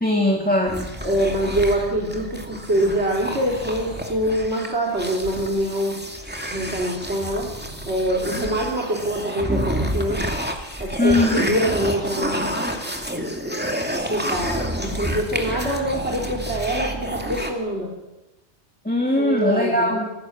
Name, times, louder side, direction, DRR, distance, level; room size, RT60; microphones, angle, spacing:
voice 1, 0.0-0.9 11.0-11.4 18.9-20.1, left 1 dB, 5° left, 1 dB, 2.2 m, -20 dB
sound 1, 0.7-17.5, equal, 10° right, 2.5 m, -29 dB
voice 2, 1.0-6.0 6.5-7.5 7.9-10.3 10.8-12.6 14.1-17.9 19.2-20.1, right 1 dB, 65° right, -2 dB, 3.6 m, -24 dB
25.5 x 18.0 x 7.3 m, 0.99 s
omnidirectional pair, 1.2 m